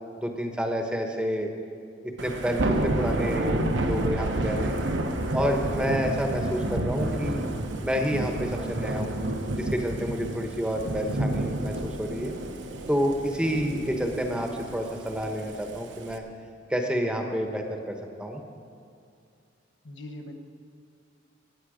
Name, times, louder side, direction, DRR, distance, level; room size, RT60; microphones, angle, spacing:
voice 1, 0.2-1.5 2.0-4.9 5.3-7.4 7.8-9.2 9.5-12.3 12.9-16.2 16.7-18.4, equal, 5° right, 3 dB, 1.0 m, -29 dB
Thunder / Rain, 2.2-16.2, right 1 dB, 70° right, 1.0 m, -30 dB
voice 2, 3.6-4.0 19.8-20.3, left 1 dB, 70° left, 5 dB, 1.1 m, -36 dB
20.5 x 8.8 x 5.1 m, 2.3 s
head